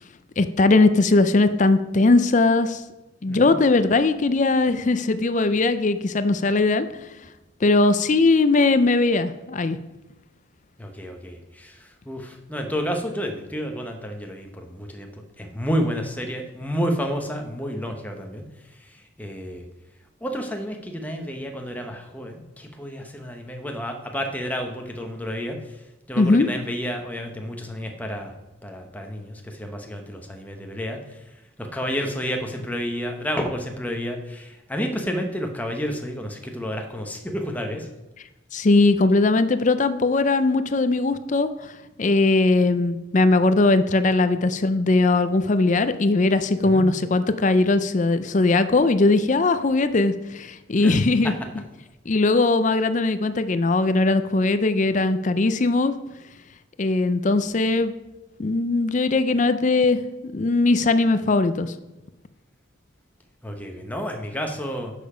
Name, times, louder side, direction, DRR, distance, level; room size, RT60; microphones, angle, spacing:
voice 1, 0.4-2.8 3.2-6.9 7.6-9.8 26.2-26.5 38.5-41.7 42.0-51.3 52.1-55.9 56.8-57.9 58.4-61.7, left 3 dB, 35° left, 11 dB, 0.4 m, -20 dB
voice 2, 10.8-15.1 15.4-18.4 19.2-19.7 20.2-25.6 26.1-28.3 28.6-31.0 31.6-37.9 46.7-46.9 50.8-50.9 63.4-64.9, equal, 10° left, 3 dB, 1.0 m, -30 dB
10.5 x 6.8 x 5.0 m, 1.0 s
head